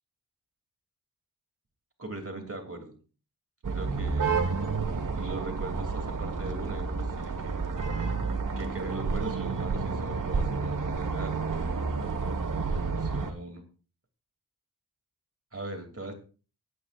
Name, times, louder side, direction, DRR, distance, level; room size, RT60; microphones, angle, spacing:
voice 1, 2.0-3.0 3.7-4.5 4.9-7.6 8.6-11.5 12.6-13.6 15.5-16.1, right 2 dB, 40° right, 4 dB, 2.7 m, -40 dB
sound 1, 3.6-13.3, right 4 dB, 60° right, 1.5 m, -30 dB
23.0 x 8.3 x 2.5 m, 0.36 s
cardioid pair, 55°, 36 cm